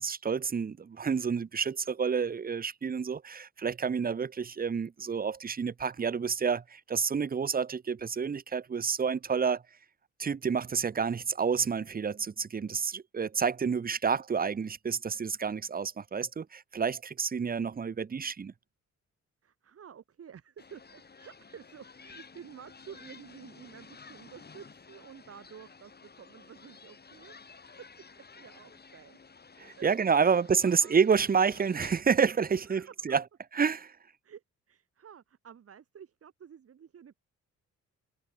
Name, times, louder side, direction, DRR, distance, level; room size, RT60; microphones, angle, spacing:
voice 1, 0.0-9.6 10.2-18.5 29.6-33.2 33.5-34.0, right 6 dB, 30° right, 1.1 m, -29 dB
voice 2, 19.4-27.6 28.2-29.2 29.7-29.9 30.2-31.0 32.7-32.9 34.2-37.2, right 8 dB, 50° right, 2.7 m, -51 dB
sound 1, 20.6-32.0, left 5 dB, 35° left, 6.9 m, -53 dB
cardioid pair, 90°, 30 cm